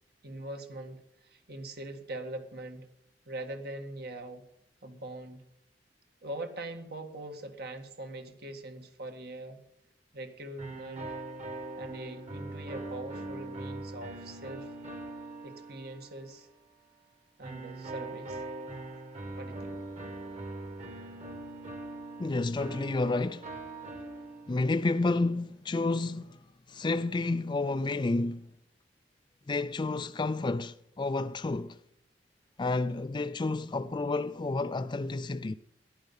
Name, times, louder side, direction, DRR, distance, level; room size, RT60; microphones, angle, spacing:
voice 1, 0.2-2.9 3.3-4.4 4.8-5.4 6.2-9.6 10.1-11.1 11.8-14.7 15.4-16.5 17.4-18.4 19.3-19.8 23.8-24.1, right 1 dB, 60° right, 1.8 m, -42 dB
sound 1, 10.6-16.4 17.4-24.8, right 2 dB, 40° right, 1.9 m, -41 dB
voice 2, 22.2-23.5 24.5-26.4 26.7-28.5 29.5-31.8 32.6-35.5, left 3 dB, 25° left, 0.4 m, -30 dB
14.0 x 11.0 x 5.6 m
head